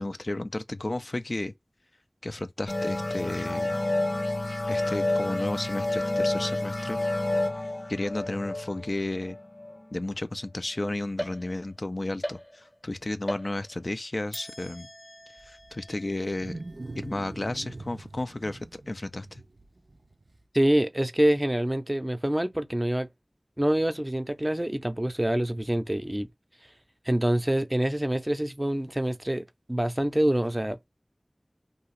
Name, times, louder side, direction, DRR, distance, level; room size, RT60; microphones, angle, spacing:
voice 1, 0.0-1.5 2.2-3.8 4.7-7.0 7.9-9.4 9.9-14.9 15.4-16.6 16.9-19.4, left 2 dB, 70° left, 0.3 m, -33 dB
sound 1, 2.7-9.9, left 2 dB, 85° left, 1.0 m, -29 dB
sound 2, 11.2-11.8 12.2-12.9 13.3-13.9 14.3-17.8, equal, 20° left, 0.6 m, -41 dB
Wild animals, 15.4-20.4, right 2 dB, 90° right, 0.3 m, -43 dB
voice 2, 20.5-23.1 23.6-26.3 27.1-30.8, right 1 dB, 25° right, 0.5 m, -26 dB
2.7 x 2.4 x 3.0 m
wide cardioid pair, 45°, 0 cm